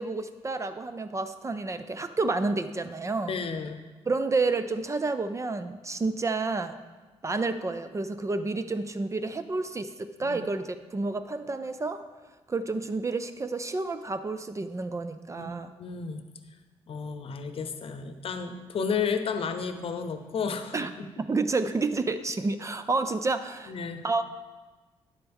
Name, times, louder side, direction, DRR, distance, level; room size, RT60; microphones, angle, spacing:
voice 1, 0.0-3.3 4.1-6.8 7.2-12.0 12.5-15.7 20.7-20.9 21.2-23.7 24.0-24.2, right 3 dB, 25° right, 10 dB, 0.5 m, -30 dB
voice 2, 3.3-3.8 10.2-10.4 15.4-16.2 16.9-21.1 23.7-24.0, left 5 dB, 55° left, 8 dB, 0.8 m, -32 dB
10.0 x 7.8 x 3.6 m, 1.3 s
cardioid pair, 80°, 11 cm